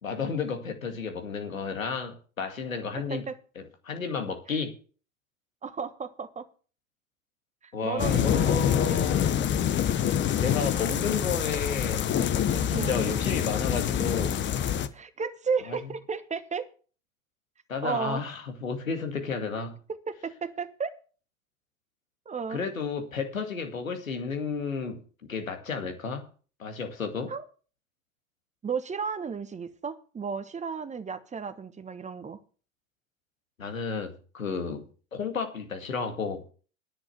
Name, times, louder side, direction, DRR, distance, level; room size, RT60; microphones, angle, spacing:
voice 1, 0.0-3.3 3.6-4.8 7.7-9.4 10.3-12.1 12.5-14.4 15.7-15.8 17.7-19.8 22.5-25.0 25.3-26.3 26.6-27.3 33.6-36.5, left 5 dB, 85° left, 2.2 m, -32 dB
voice 2, 2.9-3.4 5.6-6.5 7.8-9.0 12.7-13.0 14.9-16.7 17.8-18.2 20.1-20.9 22.3-22.6 27.3-27.4 28.6-32.4, right 5 dB, 20° right, 1.2 m, -33 dB
sound 1, 8.0-14.9, left 9 dB, 30° left, 1.0 m, -26 dB
10.5 x 8.3 x 7.0 m
figure-of-eight pair, 85°, 39 cm